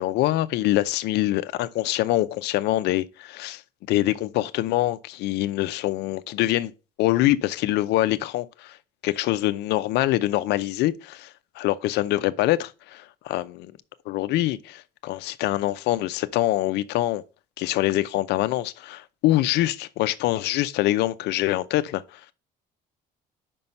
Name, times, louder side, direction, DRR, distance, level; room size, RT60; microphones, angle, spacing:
voice 1, 0.0-3.6 3.9-6.7 7.0-8.8 9.0-11.3 11.6-13.7 14.1-17.2 17.6-22.2, left 15 dB, 80° left, 0.6 m, -24 dB
5.6 x 5.3 x 5.3 m
cardioid pair, 110°, 17 cm